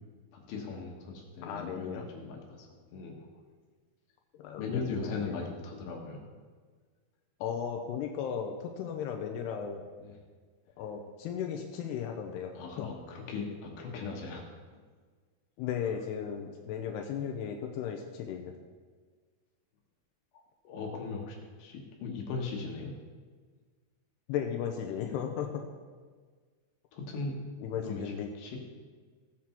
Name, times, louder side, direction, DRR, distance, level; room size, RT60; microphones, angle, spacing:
voice 1, 0.3-3.3 4.5-6.3 10.0-10.2 12.5-14.4 14.7-14.8 20.3-23.0 26.9-27.5 27.8-28.6, left 4 dB, 70° left, 0 dB, 3.2 m, -39 dB
voice 2, 1.4-2.1 4.3-5.3 7.4-9.8 10.8-12.9 15.6-18.5 24.3-25.6 27.6-28.3, left 8 dB, 90° left, 3 dB, 2.3 m, -36 dB
17.0 x 7.7 x 4.4 m, 1.5 s
omnidirectional pair, 5.7 m